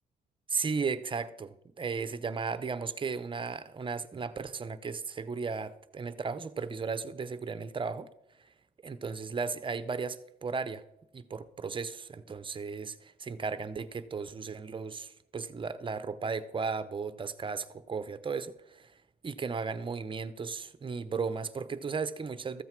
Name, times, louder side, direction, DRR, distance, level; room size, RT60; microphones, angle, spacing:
voice 1, 0.5-8.1 8.8-10.8 11.1-18.9 19.2-22.6, right 5 dB, 30° right, 0.8 m, -35 dB
14.0 x 8.0 x 4.6 m
cardioid pair, 95°, 17 cm